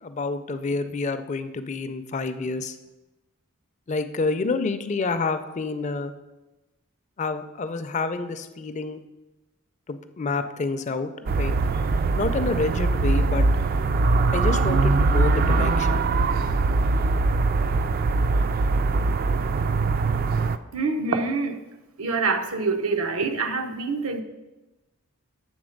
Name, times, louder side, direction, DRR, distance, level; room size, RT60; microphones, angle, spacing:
voice 1, 0.0-2.8 3.9-6.1 7.2-9.0 9.9-11.5 12.2-13.5 14.3-16.1, left 3 dB, 35° left, 10 dB, 0.4 m, -28 dB
sound 1, 11.3-20.6, right 3 dB, 45° right, 0.3 m, -22 dB
voice 2, 20.7-21.6 22.0-24.2, right 4 dB, 85° right, 7 dB, 0.7 m, -25 dB
7.9 x 3.8 x 6.4 m, 1.1 s
head